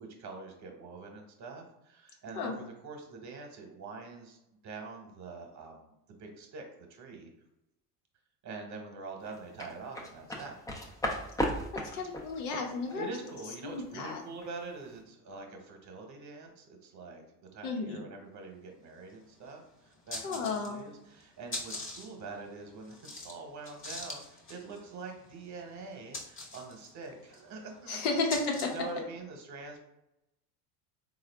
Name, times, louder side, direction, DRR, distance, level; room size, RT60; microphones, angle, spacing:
voice 1, 0.0-5.9 6.2-6.6 6.9-7.3 8.4-10.5 12.9-17.2 17.5-28.0 28.7-29.8, right 3 dB, 40° right, 3 dB, 1.0 m, -45 dB
sound 1, 9.2-14.5 14.8-15.0, equal, 10° left, 0.4 m, -36 dB
voice 2, 11.7-13.1 13.6-14.2 17.6-18.1 20.2-20.8 27.9-28.7, left 4 dB, 85° left, 2 dB, 1.0 m, -33 dB
sound 2, 19.1-19.2 19.5-19.6 19.9-20.9 21.2-28.9, left 2 dB, 30° left, 0.9 m, -43 dB
3.7 x 2.4 x 3.4 m, 0.87 s
supercardioid pair, 105°, 43 cm